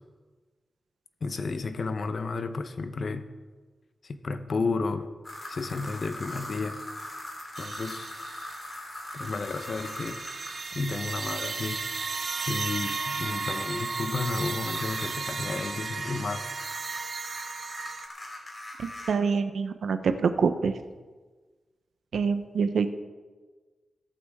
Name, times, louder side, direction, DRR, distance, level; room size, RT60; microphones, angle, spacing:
voice 1, 1.2-3.3 4.0-5.1 5.5-6.8 7.6-8.1 9.1-10.2 10.6-11.8 12.5-16.5, left 4 dB, 45° left, 10 dB, 0.8 m, -32 dB
sound 1, 5.2-10.7 14.4-19.1, left 1 dB, 25° left, 3.0 m, -41 dB
sound 2, 7.5-8.7 9.1-18.1, right 4 dB, 45° right, 0.6 m, -34 dB
voice 2, 18.8-20.8 22.1-22.9, right 5 dB, 75° right, 9 dB, 0.8 m, -26 dB
22.0 x 8.6 x 3.6 m, 1.4 s
wide cardioid pair, 165°, 0 cm